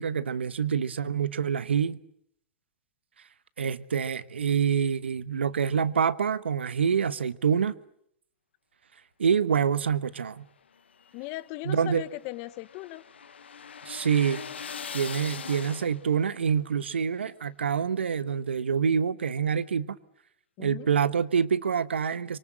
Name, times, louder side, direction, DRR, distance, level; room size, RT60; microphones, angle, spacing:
voice 1, 0.0-2.0 3.6-7.7 9.2-10.4 11.6-12.0 13.9-14.4 14.9-20.0 20.6-22.4, right 7 dB, 85° right, 1.1 m, -26 dB
sound 1, 10.8-16.3, left 7 dB, 85° left, 1.1 m, -41 dB
voice 2, 11.1-13.0 20.6-20.9, left 19 dB, 45° left, 1.1 m, -38 dB
25.5 x 23.0 x 7.7 m
hypercardioid pair, 110°, 6 cm